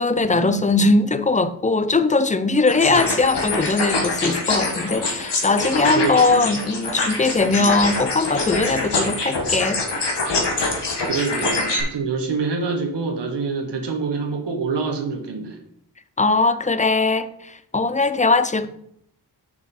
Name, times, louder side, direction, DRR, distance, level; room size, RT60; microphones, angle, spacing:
voice 1, 0.0-9.8 16.2-18.7, left 3 dB, 20° left, 0.5 m, -20 dB
sound 1, 2.7-11.8, left 3 dB, 80° left, 1.8 m, -24 dB
voice 2, 5.9-6.5 7.5-7.8 9.1-9.3 11.0-15.6, right 4 dB, 85° right, 1.3 m, -26 dB
7.2 x 6.1 x 4.2 m
wide cardioid pair, 75°, 41 cm